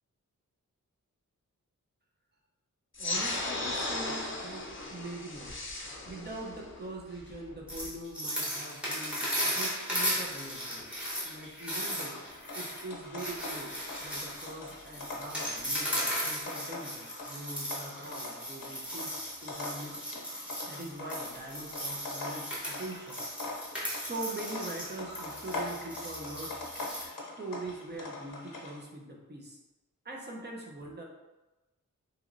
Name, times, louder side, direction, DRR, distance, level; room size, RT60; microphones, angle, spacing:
sound 1, 2.9-8.0, left 2 dB, 40° left, 0.5 m, -36 dB
voice 1, 3.0-5.7 6.0-12.2 12.5-13.7 14.0-20.2 20.7-23.2 23.6-26.7 27.2-29.6 30.0-31.0, right 2 dB, 30° right, -1 dB, 0.6 m, -43 dB
sound 2, 7.7-27.1, equal, 5° right, 1.0 m, -36 dB
sound 3, 11.8-28.8, left 2 dB, 85° left, 0.6 m, -43 dB
3.0 x 2.8 x 2.5 m, 1.1 s
wide cardioid pair, 60°, 33 cm